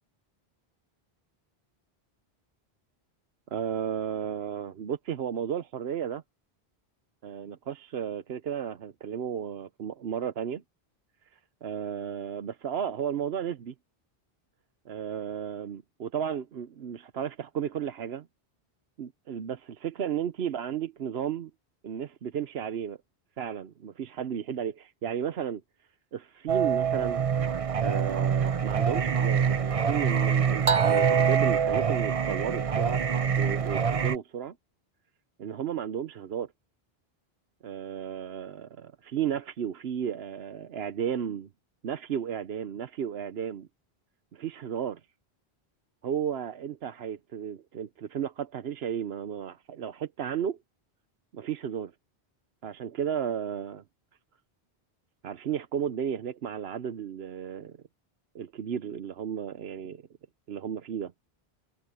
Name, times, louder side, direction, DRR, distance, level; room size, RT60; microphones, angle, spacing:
voice 1, 3.5-6.2 7.2-10.6 11.3-13.7 14.9-18.3 19.0-21.5 21.8-23.0 23.4-25.6 26.1-27.2 27.8-33.0 33.4-34.6 35.4-36.5 37.6-41.5 41.8-43.7 44.3-45.0 46.0-50.6 51.3-51.9 52.6-53.8 55.2-57.7 58.3-60.0 60.5-61.1, right 8 dB, 75° right, 1.0 m, -33 dB
Singing, 26.5-34.1, right 7 dB, 40° right, 0.7 m, -25 dB
omnidirectional pair, 1.1 m